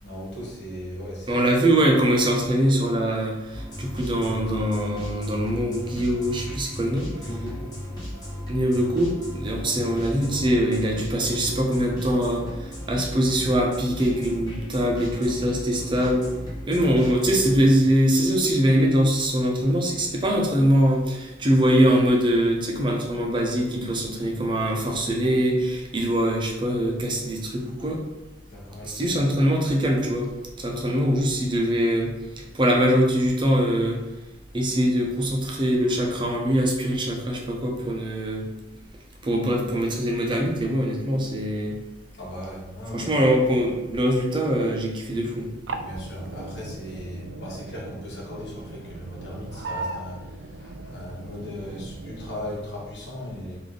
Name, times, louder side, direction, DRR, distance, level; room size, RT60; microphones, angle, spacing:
voice 1, 0.0-1.4 7.2-7.8 28.5-29.2 39.6-39.7 42.1-43.3 45.8-53.6, equal, 70° left, -5 dB, 1.3 m, -37 dB
voice 2, 1.3-7.1 8.5-16.2 16.7-28.0 28.8-30.3 30.6-34.0 34.5-38.5 39.2-41.8 42.9-45.5, equal, 25° right, -1 dB, 0.7 m, -23 dB
sound 1, 3.5-17.6, equal, 20° left, 1.3 m, -36 dB
sound 2, 45.7-52.6, right 2 dB, 80° right, 0.4 m, -38 dB
3.4 x 2.7 x 3.8 m, 0.99 s
head